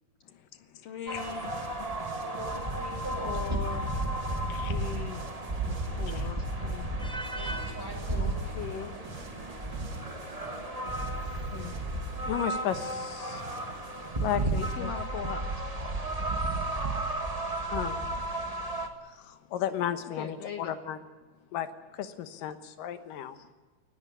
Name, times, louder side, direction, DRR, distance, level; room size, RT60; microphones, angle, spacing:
voice 1, 0.8-1.5 3.2-3.9 4.4-5.2 5.6-6.9 8.1-9.0 11.4-11.8 14.4-15.7 20.2-20.8, left 7 dB, 65° left, 8 dB, 1.6 m, -40 dB
sound 1, 1.1-18.9, right 2 dB, 20° right, 0.9 m, -33 dB
sound 2, 1.1-14.7, right 3 dB, 50° right, 4.2 m, -47 dB
voice 2, 2.2-3.4 7.3-8.4, right 1 dB, 5° left, 0 dB, 5.7 m, -41 dB
voice 3, 12.3-13.4 14.2-14.9 17.7-18.0 19.1-21.0 21.5-21.7 21.9-23.4, left 10 dB, 90° left, 11 dB, 2.9 m, -34 dB
19.5 x 15.5 x 9.8 m, 1.3 s
omnidirectional pair, 3.8 m